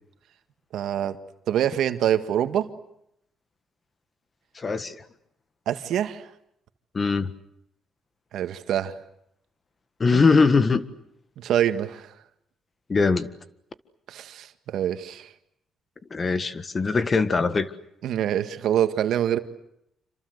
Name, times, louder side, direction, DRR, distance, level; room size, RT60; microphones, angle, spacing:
voice 1, 0.7-1.2 1.5-2.7 5.7-6.3 8.3-9.0 10.1-10.2 11.4-12.1 14.1-15.3 18.0-19.4, right 10 dB, 75° right, 9 dB, 1.8 m, -25 dB
voice 2, 4.5-5.0 6.9-7.3 10.0-10.8 12.9-13.3 16.1-17.7, left 4 dB, 35° left, 12 dB, 1.7 m, -21 dB
27.5 x 25.5 x 8.1 m, 0.78 s
cardioid pair, 90°, 0 cm